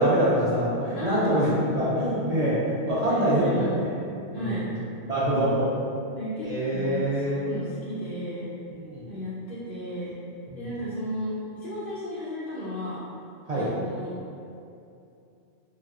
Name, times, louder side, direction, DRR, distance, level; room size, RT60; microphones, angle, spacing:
voice 1, 0.0-3.9 4.2-4.7 5.1-5.7 6.4-7.5 8.7-9.1 10.5-10.7 13.5-13.7, right 1 dB, 60° right, -8 dB, 0.4 m, -25 dB
voice 2, 0.9-1.4 3.1-3.7 4.3-4.7 6.1-8.5 9.1-10.2 10.5-13.0 13.5-14.1, equal, 65° left, -10 dB, 0.7 m, -34 dB
4.0 x 2.0 x 2.3 m, 2.6 s
omnidirectional pair, 1.1 m